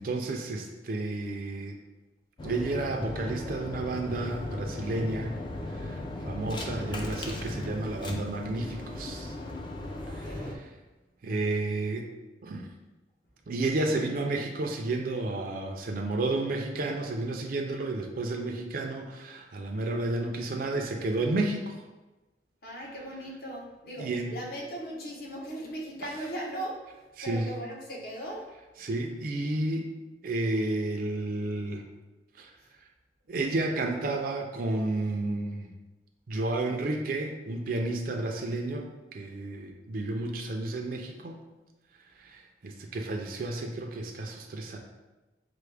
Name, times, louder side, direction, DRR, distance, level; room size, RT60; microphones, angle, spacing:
voice 1, 0.0-1.8 2.4-5.4 5.7-9.3 10.1-10.7 11.2-12.1 12.4-12.7 13.5-21.8 24.0-24.3 26.0-26.1 27.2-27.5 28.8-29.9 30.2-31.8 32.4-32.5 33.3-35.7 36.3-41.4 42.2-44.8, right 2 dB, 50° right, 3 dB, 0.4 m, -31 dB
sound 1, 2.4-10.5, left 1 dB, 25° left, 0.4 m, -37 dB
voice 2, 10.1-10.6 22.6-26.8 27.2-28.4, right 1 dB, 60° left, -2 dB, 0.9 m, -38 dB
5.7 x 2.0 x 3.3 m, 1.1 s
head